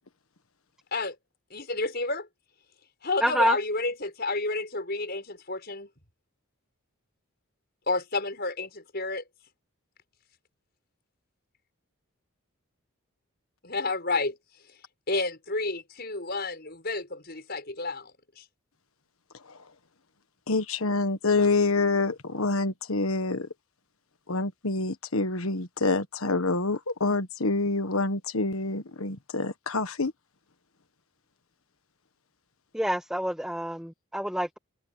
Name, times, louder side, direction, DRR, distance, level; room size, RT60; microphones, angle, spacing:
voice 1, 1.5-2.3 3.0-5.9 7.9-9.2 13.6-14.4 15.1-18.1 18.4-18.5, left 3 dB, 45° left, 6.9 m, -30 dB
voice 2, 3.2-3.6 32.7-34.6, equal, 5° right, 1.3 m, -27 dB
voice 3, 20.5-23.5 24.3-30.1, left 3 dB, 70° left, 1.4 m, -27 dB
head